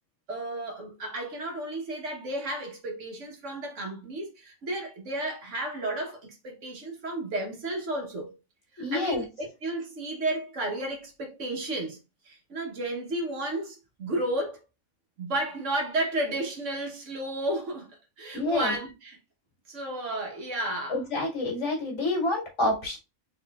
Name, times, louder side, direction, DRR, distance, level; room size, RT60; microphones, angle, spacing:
voice 1, 0.3-8.4 8.7-12.0 12.2-14.6 15.2-19.2 19.7-21.0, right 1 dB, 60° right, 1.4 m, -32 dB
voice 2, 8.8-9.2 18.3-18.7 20.9-23.0, left 2 dB, 55° left, 2.1 m, -28 dB
4.1 x 3.7 x 2.3 m
omnidirectional pair, 1.5 m